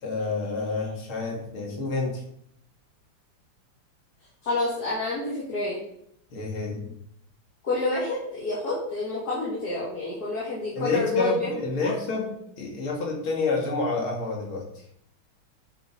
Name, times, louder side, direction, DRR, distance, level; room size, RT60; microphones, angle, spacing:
voice 1, 0.0-2.2 6.3-6.9 10.7-14.6, left 3 dB, 75° left, -1 dB, 3.0 m, -29 dB
voice 2, 4.4-5.8 7.6-11.5 11.8-11.9, left 2 dB, 50° left, -6 dB, 2.7 m, -28 dB
9.5 x 7.7 x 4.0 m, 0.71 s
omnidirectional pair, 2.3 m